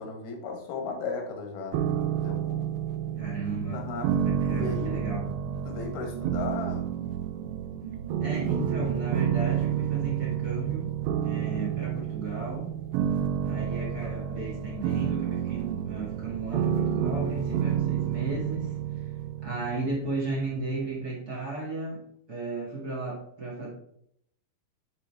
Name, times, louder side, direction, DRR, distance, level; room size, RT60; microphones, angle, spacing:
voice 1, 0.0-2.6 3.7-5.0 5.6-6.9 11.3-11.5, left 4 dB, 90° left, 3 dB, 3.4 m, -36 dB
sound 1, 1.7-20.7, right 9 dB, 80° right, 2.3 m, -30 dB
voice 2, 3.2-3.8 4.2-5.2 8.2-10.9 11.2-12.7 13.4-19.1 19.4-22.0 22.3-23.7, right 3 dB, 35° right, -3 dB, 1.5 m, -34 dB
sound 2, 6.0-10.5, right 5 dB, 65° right, 1.3 m, -46 dB
9.7 x 4.1 x 3.5 m, 0.69 s
omnidirectional pair, 4.3 m